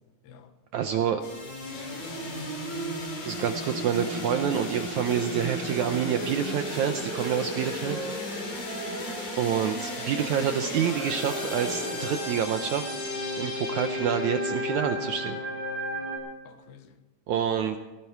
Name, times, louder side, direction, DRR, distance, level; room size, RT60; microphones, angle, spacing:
voice 1, 0.7-1.2 3.2-8.0 9.4-12.9 13.4-15.4 17.3-17.8, right 8 dB, 80° right, 1.7 m, -27 dB
sound 1, 1.2-16.2, left 1 dB, 65° left, 5.7 m, -33 dB
voice 2, 1.7-2.9 16.4-17.0, left 6 dB, 80° left, 3.0 m, -51 dB
Wind instrument woodwind instrument, 6.3-9.3 9.6-12.9, right 4 dB, 50° right, 2.0 m, -42 dB
17.5 x 17.0 x 4.6 m
omnidirectional pair, 4.2 m